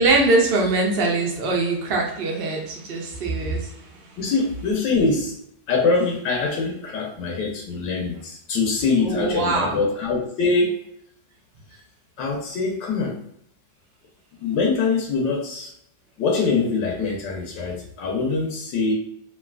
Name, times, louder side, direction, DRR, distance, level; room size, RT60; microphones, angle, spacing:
voice 1, 0.0-3.7 9.0-9.8, right 3 dB, 60° right, -2 dB, 0.6 m, -22 dB
voice 2, 4.2-5.3 5.7-10.8 12.2-13.2 14.4-15.7 16.2-18.9, left 4 dB, 85° left, 0 dB, 1.3 m, -23 dB
3.1 x 2.6 x 2.3 m, 0.74 s
omnidirectional pair, 1.9 m